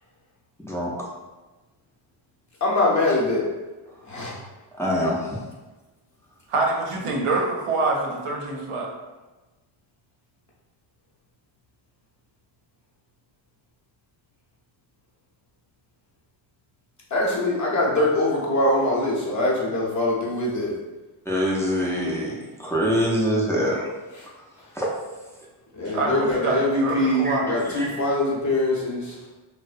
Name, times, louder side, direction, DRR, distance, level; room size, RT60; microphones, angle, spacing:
voice 1, 0.6-1.1 4.8-5.4 21.3-23.9 24.7-24.9 27.2-28.0, equal, 5° left, -5 dB, 0.5 m, -25 dB
voice 2, 2.6-3.4 4.0-4.4 17.1-20.7 25.8-29.2, left 1 dB, 35° left, -5 dB, 0.8 m, -23 dB
voice 3, 6.5-8.9 25.9-27.6, right 3 dB, 85° right, -1 dB, 0.6 m, -25 dB
2.6 x 2.0 x 2.4 m, 1.2 s
cardioid pair, 70°, 50 cm